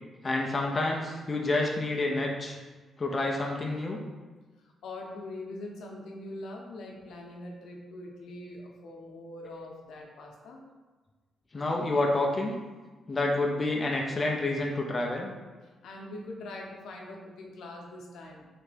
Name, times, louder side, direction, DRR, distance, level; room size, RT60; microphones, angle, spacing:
voice 1, 0.2-2.6 3.0-4.0 11.5-12.5 13.1-15.3, left 2 dB, 20° left, -1 dB, 0.4 m, -28 dB
voice 2, 4.6-10.6 15.8-18.5, left 2 dB, 85° left, -1 dB, 0.6 m, -43 dB
3.3 x 2.9 x 3.2 m, 1.3 s
wide cardioid pair, 170°, 0 cm